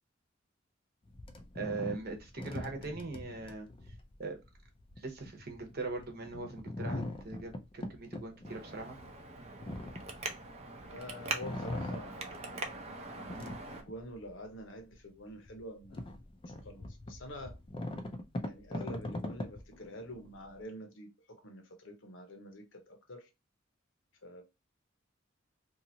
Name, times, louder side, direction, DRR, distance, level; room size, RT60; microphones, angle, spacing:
sound 1, 1.1-10.9 11.3-12.7 13.1-14.4 14.9-15.0 15.5-20.6, left 1 dB, 25° left, 0.4 m, -42 dB
voice 1, 1.5-3.7 4.2-4.4 5.0-9.0, right 3 dB, 55° right, 0.9 m, -41 dB
Traffic noise roadway noise, 8.4-13.8, right 3 dB, 35° right, 0.5 m, -42 dB
voice 2, 10.9-12.7 13.7-16.2 16.5-17.6 18.4-23.3 24.2-24.4, equal, 75° left, 0.9 m, -47 dB
2.8 x 2.5 x 2.8 m
head